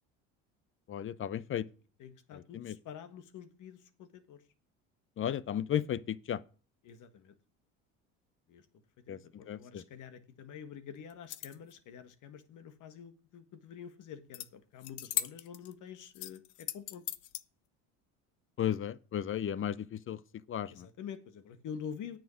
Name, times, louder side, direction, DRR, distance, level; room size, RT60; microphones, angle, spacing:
voice 1, 0.9-1.6 2.5-2.7 5.2-6.4 9.1-9.2 9.5-9.8 18.6-20.2 20.5-20.9, left 10 dB, 35° left, 0.7 m, -34 dB
voice 2, 2.0-4.4 6.8-7.3 8.5-8.7 9.1-17.0 20.7-22.2, left 7 dB, 55° left, 1.7 m, -47 dB
sound 1, 11.1-11.7 14.3-14.5 14.8-15.7 16.1-17.4, left 15 dB, 90° left, 0.8 m, -38 dB
9.2 x 7.3 x 6.3 m
supercardioid pair, 85°, 36 cm